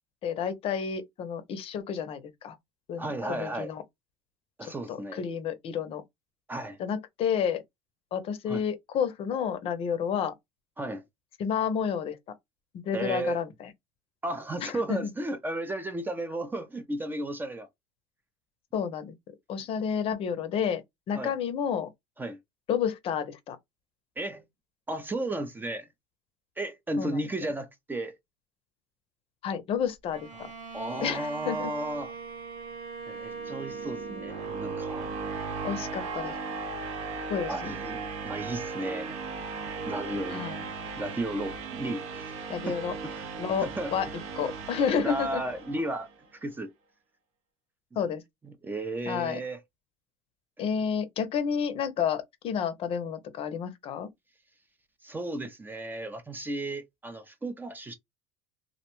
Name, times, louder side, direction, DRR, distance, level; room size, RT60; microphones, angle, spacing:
voice 1, 0.2-2.6 2.9-3.8 4.9-6.0 6.8-7.6 8.1-10.3 11.4-12.2 12.8-13.4 14.6-15.1 18.7-19.1 19.5-20.8 21.1-21.9 22.7-23.6 27.0-27.2 29.4-30.5 31.0-31.7 35.6-36.3 37.3-37.7 40.3-40.6 42.5-42.9 43.4-44.1 44.4-45.4 48.0-48.2 49.1-49.4 50.6-54.1, left 7 dB, 45° left, 0.6 m, -30 dB
voice 2, 3.0-3.7 4.6-5.2 6.5-6.8 8.5-8.6 10.8-11.0 12.9-13.4 14.2-17.7 21.1-21.4 22.2-22.4 24.2-24.4 24.9-25.9 26.6-28.2 30.4-30.5 30.7-32.1 33.1-35.1 37.5-39.2 39.8-40.4 41.0-42.3 42.7-43.3 43.6-43.9 45.0-46.1 46.4-46.7 48.4-49.6 55.0-57.9, right 1 dB, 15° right, 0.5 m, -34 dB
Bowed string instrument, 30.1-35.9, right 5 dB, 85° right, 1.5 m, -42 dB
sound 1, 33.1-46.1, right 4 dB, 60° right, 0.6 m, -37 dB
2.5 x 2.1 x 2.9 m
supercardioid pair, 105°, 13 cm